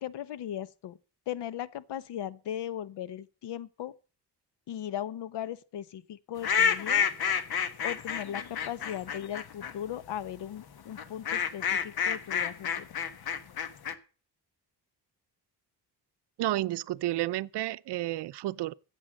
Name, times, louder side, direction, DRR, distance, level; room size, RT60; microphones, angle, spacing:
voice 1, 0.0-1.0 1.3-3.9 4.7-7.1 7.8-12.9, left 11 dB, 85° left, 1.0 m, -38 dB
sound 1, 6.4-9.7 11.0-13.9, left 7 dB, 65° left, 1.4 m, -29 dB
voice 2, 16.4-18.7, right 15 dB, 80° right, 0.6 m, -31 dB
15.0 x 8.3 x 6.4 m
cardioid pair, 120°, 41 cm